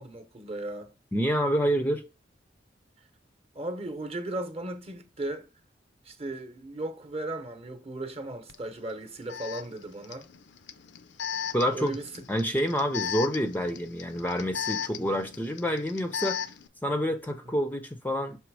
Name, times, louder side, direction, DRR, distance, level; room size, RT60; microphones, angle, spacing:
voice 1, 0.0-0.9 3.5-5.5 6.0-10.3 11.7-12.2 17.4-17.5, right 1 dB, 35° right, 0.9 m, -36 dB
voice 2, 1.1-2.0 11.5-11.9 12.3-16.4 16.8-18.4, equal, 10° left, 0.5 m, -28 dB
Alarm, 8.5-8.6 9.3-16.7, left 8 dB, 70° left, 0.5 m, -36 dB
6.1 x 3.4 x 4.7 m
head